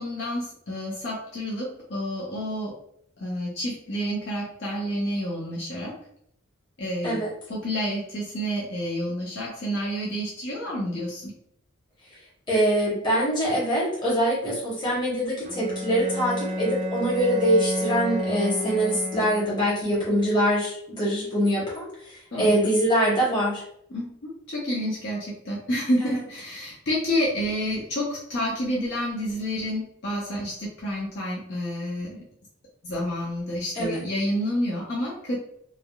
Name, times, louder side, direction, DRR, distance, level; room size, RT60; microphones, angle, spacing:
voice 1, 0.0-2.7 3.2-6.0 6.8-7.2 7.5-11.3 22.3-22.5 23.9-32.2 32.8-35.3, equal, 55° left, -4 dB, 0.6 m, -29 dB
voice 2, 12.5-23.6 33.7-34.0, equal, 20° left, -8 dB, 1.0 m, -24 dB
Bowed string instrument, 15.4-19.9, equal, 35° right, 0.4 m, -31 dB
3.3 x 2.2 x 2.3 m, 0.71 s
head